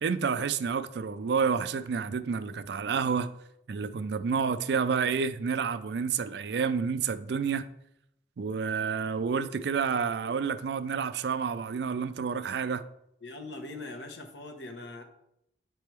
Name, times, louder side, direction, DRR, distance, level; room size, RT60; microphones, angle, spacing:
voice 1, 0.0-3.3 3.7-7.6 8.4-12.8, right 6 dB, 65° right, 0.4 m, -29 dB
voice 2, 13.2-15.0, left 2 dB, 70° left, 1.0 m, -41 dB
8.2 x 3.4 x 4.5 m
head